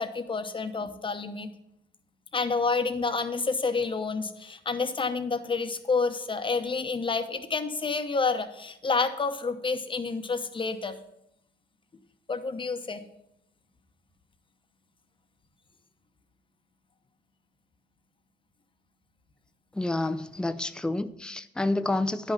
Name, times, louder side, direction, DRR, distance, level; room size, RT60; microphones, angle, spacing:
voice 1, 0.0-1.5 2.3-11.0 12.3-13.0, left 4 dB, 25° left, 9 dB, 0.9 m, -29 dB
voice 2, 19.8-22.3, left 2 dB, 5° left, 10 dB, 0.4 m, -29 dB
9.9 x 5.7 x 5.8 m, 0.81 s
cardioid pair, 90°, 20 cm